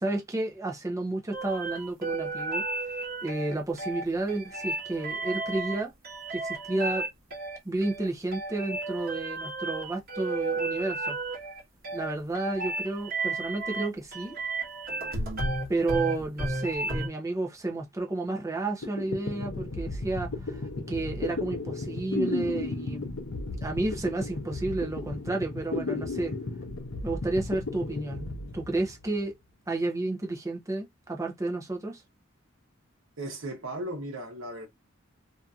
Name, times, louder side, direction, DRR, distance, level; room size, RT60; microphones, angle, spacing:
voice 1, 0.0-2.6 3.2-5.9 6.3-7.1 7.6-11.2 11.9-14.3 15.7-20.6 20.9-23.1 23.6-26.3 27.0-28.3 28.5-29.4 29.7-32.0, right 2 dB, 15° right, 0.6 m, -31 dB
sound 1, 1.3-17.1, right 2 dB, 50° right, 1.2 m, -33 dB
sound 2, 18.5-18.6 18.8-29.3, left 3 dB, 65° left, 0.6 m, -34 dB
voice 2, 33.2-34.7, right 1 dB, 70° right, 1.0 m, -36 dB
2.7 x 2.6 x 2.3 m
head